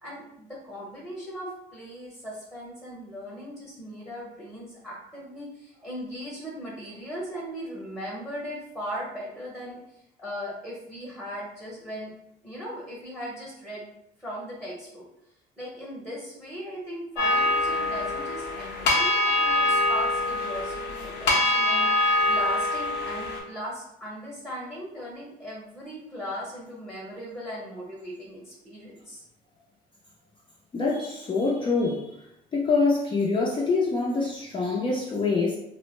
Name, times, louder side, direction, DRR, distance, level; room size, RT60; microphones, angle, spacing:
voice 1, 0.0-9.8 10.2-12.1 12.4-13.9 14.2-15.1 15.6-29.2, equal, 5° right, -5 dB, 0.8 m, -38 dB
sound 1, 17.2-23.4, left 2 dB, 85° left, 0.7 m, -24 dB
voice 2, 30.7-32.2 32.5-35.6, left 3 dB, 30° left, -4 dB, 0.5 m, -25 dB
2.4 x 2.1 x 3.0 m, 0.80 s
cardioid pair, 110°, 17 cm